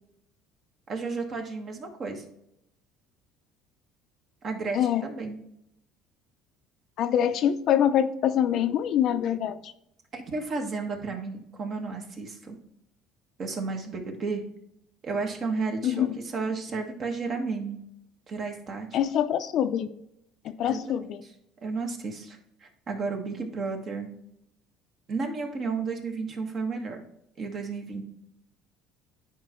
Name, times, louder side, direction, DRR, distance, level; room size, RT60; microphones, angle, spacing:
voice 1, 0.9-2.2 4.4-5.4 10.1-12.6 13.4-14.4 15.0-17.8 18.3-18.9 20.6-21.0 21.6-24.2 25.1-27.0 27.4-28.0, right 4 dB, 40° right, 3 dB, 1.5 m, -32 dB
voice 2, 4.7-5.0 7.0-9.7 15.8-16.1 18.9-19.9 20.4-21.2, left 10 dB, 55° left, 9 dB, 0.6 m, -25 dB
10.0 x 4.5 x 3.0 m, 0.78 s
cardioid pair, 120°, 0 cm